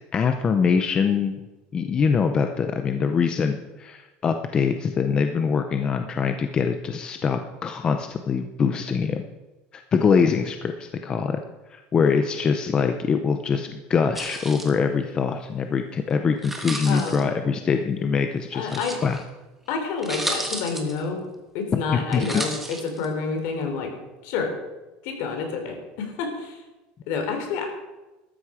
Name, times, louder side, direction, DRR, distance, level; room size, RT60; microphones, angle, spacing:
voice 1, 0.1-1.4 1.7-9.2 9.7-11.4 11.7-19.2 21.9-22.4, left 6 dB, 20° left, 7 dB, 0.6 m, -23 dB
sound 1, 14.1-14.7 16.4-17.2 18.7-19.2 19.7-19.8 20.0-21.0 22.1-23.1, right 1 dB, 5° right, 1.5 m, -32 dB
voice 2, 16.9-17.2 18.5-19.0 19.7-21.3 21.5-23.9 24.2-24.5 25.0-26.6 27.1-27.6, left 5 dB, 60° left, 4 dB, 3.4 m, -28 dB
14.0 x 13.0 x 5.0 m, 1.1 s
cardioid pair, 175°, 4 cm